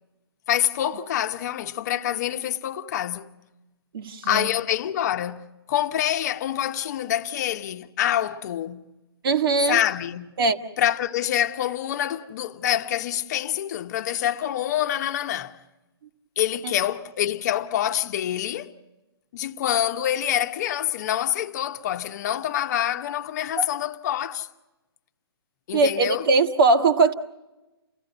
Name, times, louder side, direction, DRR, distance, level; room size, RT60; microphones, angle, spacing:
voice 1, 0.5-3.3 4.2-8.8 9.7-10.3 10.8-15.6 16.4-18.7 19.3-24.5 25.7-26.2, left 11 dB, 45° left, 1.0 m, -26 dB
voice 2, 3.9-4.5 9.2-9.8 10.4-10.6 16.6-16.7 23.6-23.7 25.7-27.1, right 3 dB, 60° right, 1.6 m, -20 dB
29.5 x 16.5 x 7.9 m
hypercardioid pair, 145°, 13 cm